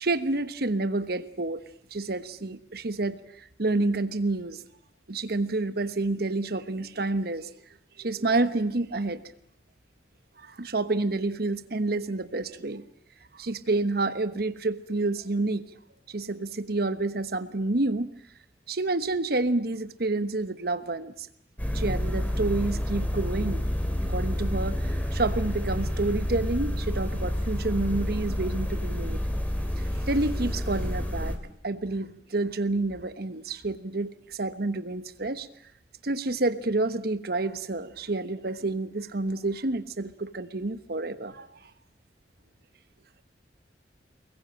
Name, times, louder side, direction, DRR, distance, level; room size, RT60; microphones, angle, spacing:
voice 1, 0.0-1.6 1.9-4.6 5.1-7.5 8.0-9.2 10.4-12.8 13.3-15.7 16.1-18.1 18.7-21.3 21.7-23.6 24.0-29.2 29.7-31.4 31.6-35.5 36.0-41.5, right 2 dB, 60° right, 12 dB, 1.2 m, -29 dB
sound 1, 21.6-31.4, equal, 10° left, 3.4 m, -29 dB
24.5 x 21.5 x 9.0 m, 0.69 s
head